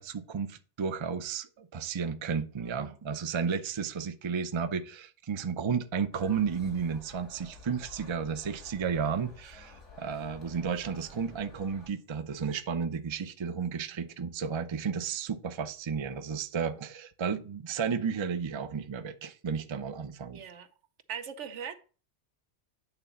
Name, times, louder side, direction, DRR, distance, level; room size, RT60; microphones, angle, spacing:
voice 1, 0.0-20.4, right 6 dB, 35° right, 0.5 m, -33 dB
voice 2, 2.6-3.0 20.3-20.7 21.1-21.7, right 7 dB, 85° right, 1.1 m, -41 dB
sound 1, 6.1-11.9, left 3 dB, 80° left, 2.5 m, -51 dB
8.9 x 4.0 x 5.7 m
omnidirectional pair, 1.2 m